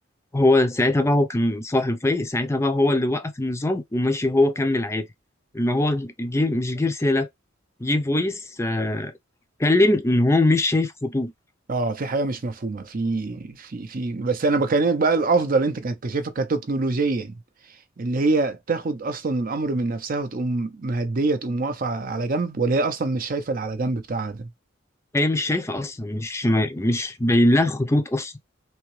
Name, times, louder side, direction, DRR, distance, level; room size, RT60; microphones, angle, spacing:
voice 1, 0.3-5.1 5.5-7.3 7.8-9.1 9.6-11.3 25.1-28.3, left 1 dB, 15° left, 0.5 m, -22 dB
voice 2, 11.7-17.4 18.0-24.5, right 3 dB, 45° right, 0.6 m, -25 dB
3.5 x 2.9 x 3.1 m
head